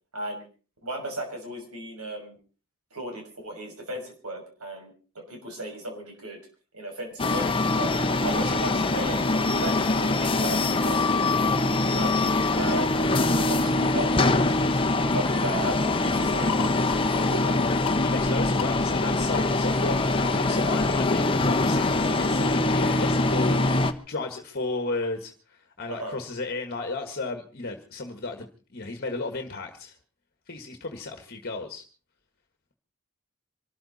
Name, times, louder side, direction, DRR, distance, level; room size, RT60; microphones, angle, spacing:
voice 1, 0.1-0.4 0.8-2.4 2.9-6.4 6.7-7.9 8.2-11.6 11.9-14.8 15.1-17.6 25.9-26.2, right 1 dB, 85° right, 2 dB, 6.5 m, -36 dB
sound 1, 7.2-23.9, left 2 dB, 25° left, 1.1 m, -23 dB
sound 2, 14.9-20.6, left 7 dB, 70° left, 1.3 m, -40 dB
voice 2, 18.0-20.0 20.3-28.5 28.7-30.0 30.5-31.8, left 3 dB, 45° left, 6 dB, 1.6 m, -34 dB
25.5 x 13.5 x 4.2 m, 0.38 s
head